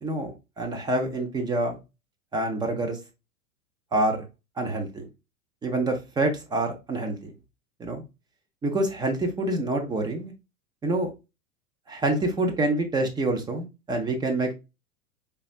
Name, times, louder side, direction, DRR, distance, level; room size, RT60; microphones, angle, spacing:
voice 1, 0.0-1.8 2.3-3.0 3.9-4.2 4.6-5.1 5.6-7.3 7.8-8.0 8.6-10.3 10.8-11.1 11.9-14.5, right 2 dB, 10° right, 0.6 m, -27 dB
5.0 x 3.4 x 2.4 m
figure-of-eight pair, 95°, 44 cm